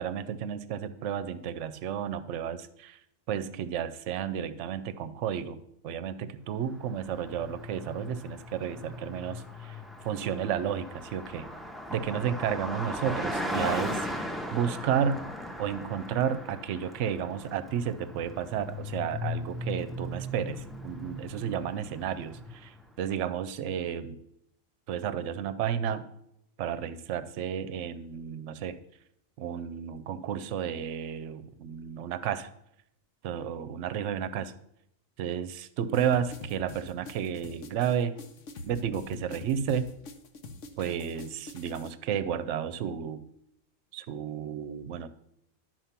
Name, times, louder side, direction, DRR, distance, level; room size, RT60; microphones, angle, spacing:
voice 1, 0.0-3.0 3.3-9.8 10.0-11.5 11.9-14.1 14.5-15.3 15.6-24.1 24.9-26.0 26.6-28.8 29.4-32.5 33.2-34.5 35.2-38.2 38.6-39.9 40.8-43.2 43.9-45.1, right 8 dB, 70° right, 12 dB, 0.9 m, -32 dB
Car passing by, 6.8-22.9, left 1 dB, ahead, 0.4 m, -38 dB
sound 1, 35.9-41.9, left 3 dB, 70° left, 1.1 m, -45 dB
11.5 x 4.6 x 5.8 m, 0.77 s
omnidirectional pair, 1.4 m